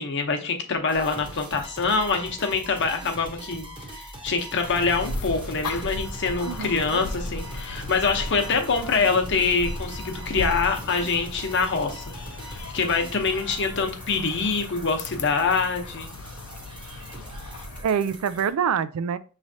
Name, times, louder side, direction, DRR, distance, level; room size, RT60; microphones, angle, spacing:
voice 1, 0.0-12.0 12.4-16.1, left 4 dB, 55° left, 0.8 m, -25 dB
sound 1, 0.9-18.5, right 1 dB, 20° right, 0.9 m, -42 dB
sound 2, 4.6-17.8, left 2 dB, 90° left, 0.6 m, -36 dB
voice 2, 6.4-7.0 17.8-19.2, right 7 dB, 75° right, 0.3 m, -26 dB
6.0 x 3.2 x 2.7 m
head